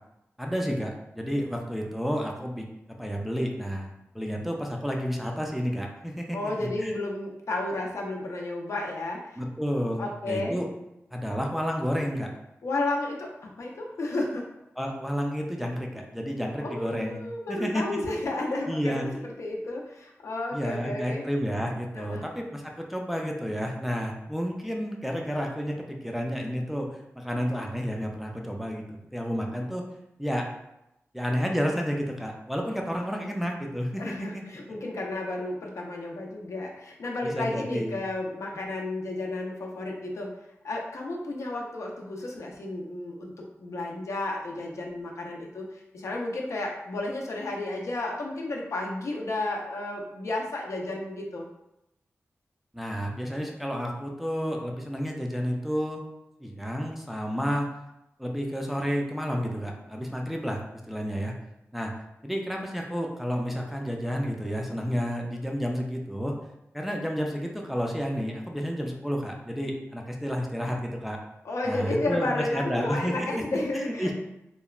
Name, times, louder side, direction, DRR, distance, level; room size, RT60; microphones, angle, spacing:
voice 1, 0.4-2.7 3.0-6.9 9.4-10.7 11.1-12.3 14.8-17.2 17.5-18.0 18.7-19.0 20.5-29.8 30.2-30.5 31.1-34.4 34.7-34.8 37.2-38.0 52.7-56.0 56.4-57.7 58.2-61.3 61.7-61.9 62.2-66.4 66.7-71.2 71.6-73.4 73.7-74.1, equal, 5° right, 0 dB, 0.3 m, -31 dB
voice 2, 6.3-9.4 10.0-10.6 12.6-14.5 16.6-19.1 19.4-21.2 22.0-22.3 34.0-40.3 40.6-51.5 71.4-74.1, left 2 dB, 80° left, -1 dB, 0.4 m, -32 dB
2.9 x 2.1 x 2.3 m, 0.87 s
wide cardioid pair, 110°, 5 cm